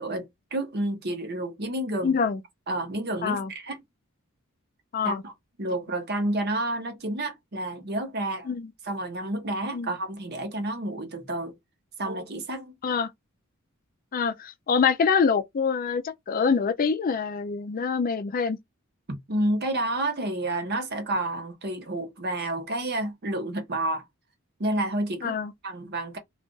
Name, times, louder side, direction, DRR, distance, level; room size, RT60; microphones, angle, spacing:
voice 1, 0.0-2.2 2.7-3.8 5.0-5.3 5.6-8.5 8.8-11.5 12.0-12.7 19.1-24.0 24.6-25.4 25.6-26.2, right 1 dB, 45° right, 0.9 m, -30 dB
voice 2, 2.0-2.4 3.2-3.5 4.9-5.2 8.5-8.7 9.7-9.9 12.8-13.1 14.1-18.6 25.2-25.5, left 5 dB, 40° left, 0.4 m, -25 dB
2.4 x 2.4 x 3.7 m
head